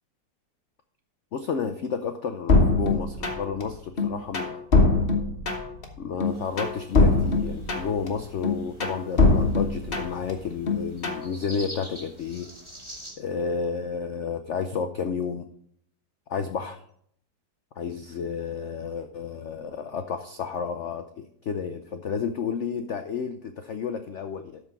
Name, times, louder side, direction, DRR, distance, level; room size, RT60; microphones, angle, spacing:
voice 1, 1.3-4.6 6.0-12.5 13.2-15.5 16.3-16.8 17.8-24.6, left 6 dB, 75° left, 8 dB, 0.6 m, -31 dB
sound 1, 2.5-3.6 4.0-5.8 6.2-8.1 8.4-10.3 10.7-11.3, left 3 dB, 35° left, 1.3 m, -22 dB
sound 2, 6.3-13.1, equal, 15° right, 3.0 m, -46 dB
13.0 x 4.5 x 5.9 m, 0.66 s
omnidirectional pair, 2.0 m